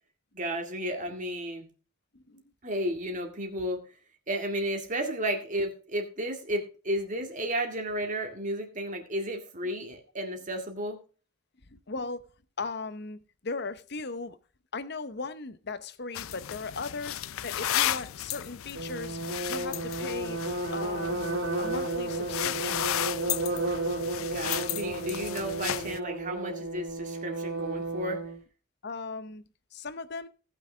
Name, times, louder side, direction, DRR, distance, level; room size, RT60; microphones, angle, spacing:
voice 1, 0.3-1.7 2.6-3.8 4.3-11.0 24.2-28.2, right 1 dB, 40° right, 2.1 m, -33 dB
voice 2, 11.7-12.2 12.6-14.4 14.7-20.4 20.7-23.0 28.8-29.4 29.7-30.3, left 3 dB, 55° left, 0.9 m, -38 dB
sound 1, 16.1-26.0, left 12 dB, 80° left, 0.4 m, -34 dB
sound 2, 18.7-28.4, right 2 dB, 75° right, 3.9 m, -33 dB
18.0 x 6.2 x 3.4 m
head